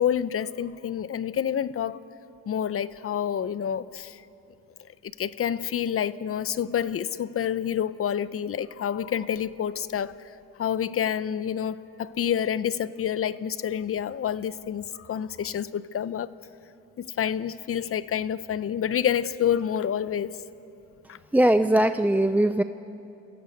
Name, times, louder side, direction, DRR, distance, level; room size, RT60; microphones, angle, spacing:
voice 1, 0.0-2.0 2.5-4.2 5.0-10.2 10.6-16.3 17.0-20.4 21.1-21.2, left 9 dB, 50° left, 0.7 m, -28 dB
voice 2, 21.3-22.6, right 1 dB, 5° right, 0.5 m, -20 dB
27.0 x 16.5 x 7.9 m
cardioid pair, 90°, 30 cm